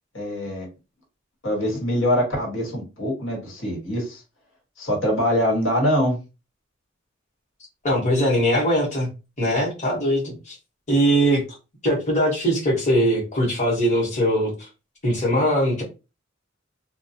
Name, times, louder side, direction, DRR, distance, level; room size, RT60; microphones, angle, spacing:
voice 1, 0.1-0.7 1.4-4.2 4.8-6.2, equal, 85° left, -1 dB, 1.4 m, -23 dB
voice 2, 7.8-9.1 9.4-10.6 10.9-11.4 11.8-14.7 15.0-15.8, equal, 40° left, -4 dB, 1.0 m, -21 dB
2.2 x 2.2 x 2.7 m, 0.29 s
head